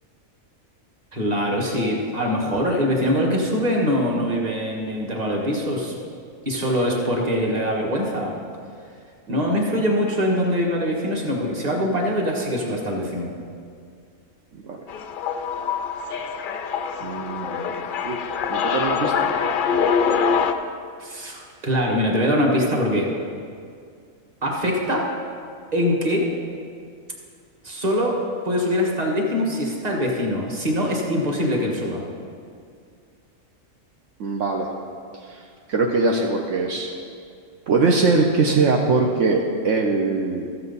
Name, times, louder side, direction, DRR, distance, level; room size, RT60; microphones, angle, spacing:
voice 1, 1.1-5.9 6.4-8.3 9.3-13.3 21.0-23.1 24.4-25.1 25.7-26.2 27.6-28.2 28.4-32.0, equal, 30° right, -1 dB, 1.5 m, -23 dB
sound 1, 14.9-20.5, left 6 dB, 65° left, 0.5 m, -24 dB
voice 2, 17.0-20.2 34.2-34.7 35.2-35.4 35.7-36.9 37.7-40.5, right 3 dB, 70° right, 0 dB, 1.1 m, -23 dB
14.0 x 7.7 x 4.0 m, 2.3 s
omnidirectional pair, 1.4 m